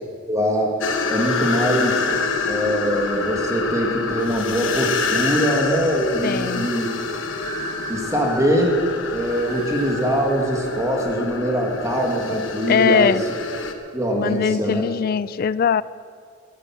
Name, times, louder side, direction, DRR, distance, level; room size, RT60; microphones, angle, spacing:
voice 1, 0.3-0.7 1.1-2.0 2.4-6.9 7.9-8.7 9.1-13.1 13.9-14.8, equal, 15° right, 0 dB, 2.0 m, -22 dB
sound 1, 0.8-13.7, left 4 dB, 70° left, 1.2 m, -27 dB
sound 2, 5.2-5.7 7.3-8.6 9.2-10.1, right 1 dB, 45° right, 4.6 m, -36 dB
voice 2, 6.2-6.7 12.7-13.2 14.1-15.8, left 7 dB, 45° left, 19 dB, 0.3 m, -20 dB
14.5 x 11.0 x 7.3 m, 2.2 s
head